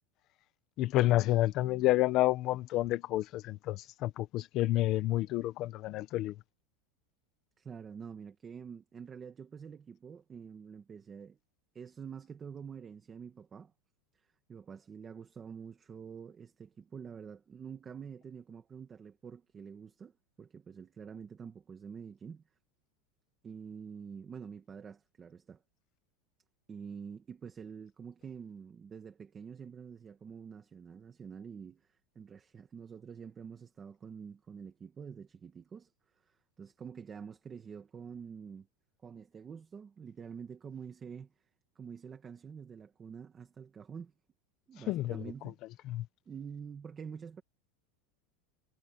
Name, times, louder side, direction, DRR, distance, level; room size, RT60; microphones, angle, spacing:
voice 1, 0.8-6.3 44.9-45.2 45.9-46.0, left 16 dB, 35° left, 1.1 m, -29 dB
voice 2, 7.6-11.4 11.8-13.7 14.2-20.1 20.4-22.4 23.4-25.6 26.7-31.9 32.2-35.9 36.2-38.7 39.0-41.3 41.8-44.1 44.7-45.6 46.3-47.4, right 6 dB, 15° right, 1.7 m, -47 dB
supercardioid pair, 175°, 0 cm